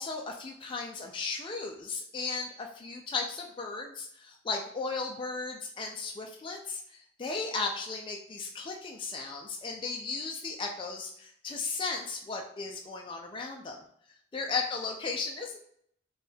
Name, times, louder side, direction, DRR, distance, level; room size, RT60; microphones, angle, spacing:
voice 1, 0.0-13.8 14.3-15.6, left 4 dB, 25° left, 1 dB, 0.3 m, -36 dB
4.3 x 2.3 x 3.3 m, 0.68 s
head